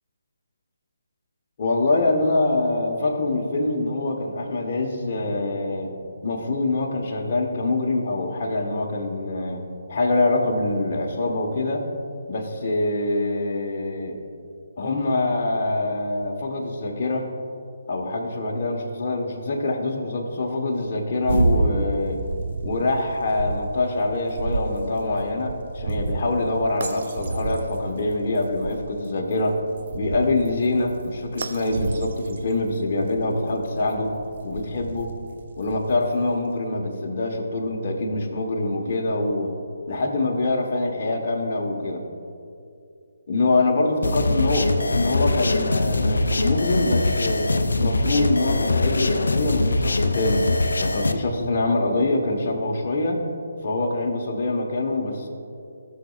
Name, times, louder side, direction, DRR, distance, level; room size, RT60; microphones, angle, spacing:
voice 1, 1.6-5.9 6.2-11.9 12.3-14.2 14.8-17.3 17.9-22.2 22.6-29.6 29.9-34.1 34.4-35.1 35.6-39.5 39.9-42.1 43.3-47.5 47.8-50.5 50.8-53.2 53.6-55.3, left 2 dB, 45° left, 0 dB, 1.2 m, -24 dB
sound 1, 21.2-36.4, right 2 dB, 50° right, 0.6 m, -30 dB
sound 2, 44.0-51.1, left 2 dB, 70° left, 0.5 m, -22 dB
16.0 x 6.6 x 2.4 m, 2.5 s
figure-of-eight pair, 145°, 0 cm